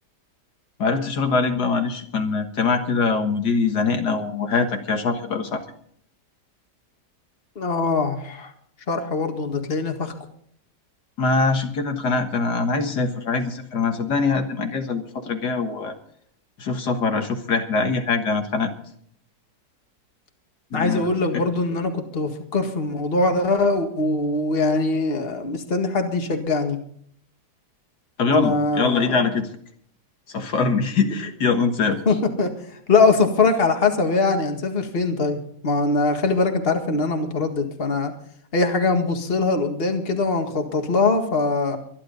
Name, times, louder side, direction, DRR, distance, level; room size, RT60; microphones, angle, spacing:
voice 1, 0.8-5.6 11.2-16.0 16.6-18.7 20.7-21.1 21.3-21.4 28.2-29.5 30.3-32.0, left 4 dB, 75° left, 5 dB, 2.1 m, -23 dB
voice 2, 7.6-8.5 8.9-10.1 20.7-26.8 28.3-29.2 32.1-35.4 35.6-38.1 38.5-41.8, left 3 dB, 35° left, 4 dB, 1.9 m, -22 dB
24.0 x 11.0 x 4.0 m, 0.63 s
omnidirectional pair, 1.8 m